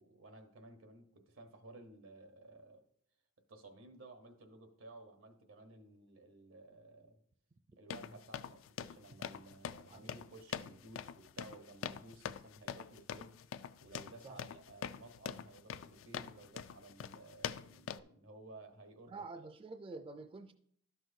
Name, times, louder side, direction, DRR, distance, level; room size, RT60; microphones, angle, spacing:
voice 1, 0.0-2.8 3.5-7.2 7.8-13.4 13.8-19.3, right 2 dB, 90° right, 1.1 m, -56 dB
sound 1, 7.9-18.0, left 8 dB, 75° left, 0.3 m, -44 dB
voice 2, 19.1-20.5, right 3 dB, 25° right, 0.3 m, -48 dB
12.0 x 6.1 x 2.7 m
head